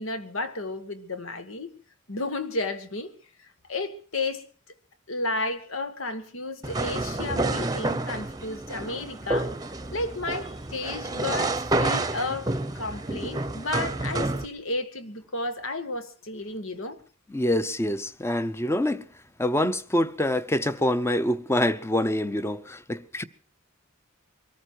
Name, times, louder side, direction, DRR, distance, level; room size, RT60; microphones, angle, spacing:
voice 1, 0.0-1.7 2.1-3.1 3.7-4.4 5.1-9.5 9.9-17.0, left 2 dB, 80° left, 1.7 m, -32 dB
sound 1, 6.6-14.5, right 2 dB, 20° right, 0.8 m, -29 dB
voice 2, 17.3-19.0 19.4-23.2, left 1 dB, 15° left, 0.7 m, -25 dB
23.0 x 14.0 x 4.5 m
head